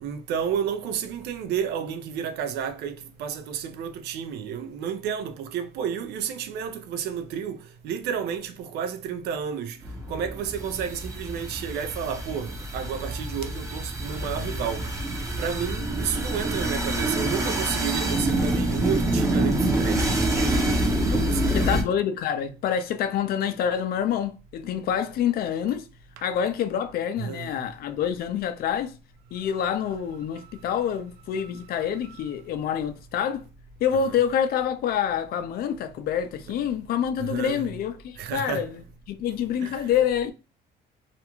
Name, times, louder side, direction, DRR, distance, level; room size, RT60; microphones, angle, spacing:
voice 1, 0.0-7.6 7.8-9.8 10.1-14.9 15.4-20.1 21.0-21.9 27.2-27.5 31.4-31.5 33.9-34.1 37.2-37.7 38.2-38.7 39.6-39.8, right 8 dB, 75° right, 0.5 m, -31 dB
sound 1, 9.8-21.8, right 1 dB, 20° right, 0.6 m, -26 dB
voice 2, 21.5-25.9 26.2-28.9 29.3-33.4 33.8-38.8 39.1-40.3, left 8 dB, 65° left, 0.5 m, -27 dB
2.5 x 2.2 x 2.9 m
cardioid pair, 110°, 17 cm